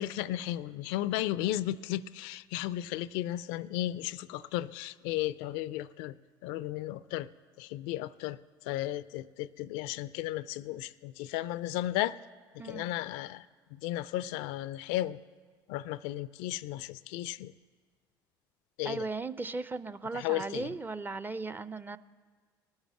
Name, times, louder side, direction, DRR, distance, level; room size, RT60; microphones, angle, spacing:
voice 1, 0.0-6.2 6.4-7.3 7.6-8.4 8.6-12.2 12.5-13.4 13.7-15.2 15.7-17.5 18.8-19.1 20.1-20.7, left 14 dB, 75° left, 18 dB, 0.4 m, -34 dB
voice 2, 12.6-12.9 18.8-22.0, right 3 dB, 20° right, 15 dB, 0.5 m, -37 dB
19.0 x 7.2 x 7.7 m, 1.5 s
hypercardioid pair, 65°, 11 cm